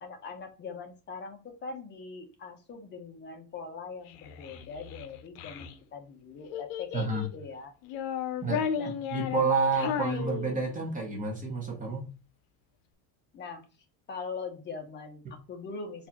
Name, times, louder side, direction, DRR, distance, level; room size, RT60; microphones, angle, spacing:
voice 1, 0.0-7.7 8.8-8.9 9.8-10.2 13.3-13.7 14.1-16.1, left 5 dB, 25° left, 5 dB, 0.6 m, -41 dB
Child speech kid speaking, 4.1-5.7 6.5-7.4 7.8-11.0, left 8 dB, 75° left, 0.6 m, -35 dB
voice 2, 6.9-7.3 8.4-8.6 9.1-12.1, right 4 dB, 15° right, 0 dB, 0.7 m, -29 dB
4.0 x 2.4 x 2.8 m, 0.32 s
cardioid pair, 155°, 47 cm